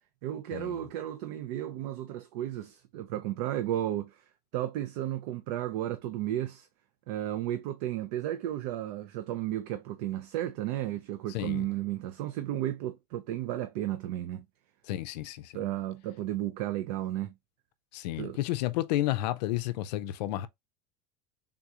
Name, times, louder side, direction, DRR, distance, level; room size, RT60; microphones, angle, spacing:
voice 1, 0.2-4.2 4.5-6.7 7.1-14.4 15.5-17.3 18.2-18.4, right 13 dB, 75° right, 0.5 m, -33 dB
voice 2, 11.3-11.6 14.9-15.5 17.9-20.5, left 15 dB, 90° left, 0.4 m, -31 dB
3.6 x 2.4 x 2.7 m
supercardioid pair, 135°, 21 cm